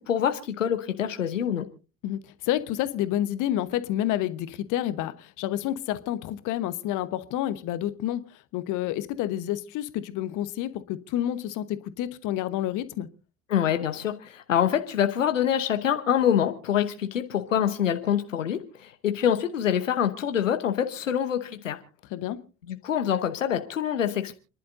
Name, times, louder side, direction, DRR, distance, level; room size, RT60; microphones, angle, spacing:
voice 1, 0.0-1.7 13.5-21.8 22.7-24.3, left 9 dB, 80° left, 8 dB, 1.0 m, -25 dB
voice 2, 2.4-8.2 8.5-13.1 22.1-22.4, left 12 dB, 55° left, 13 dB, 1.2 m, -29 dB
29.5 x 11.0 x 2.6 m, 0.35 s
figure-of-eight pair, 55°, 38 cm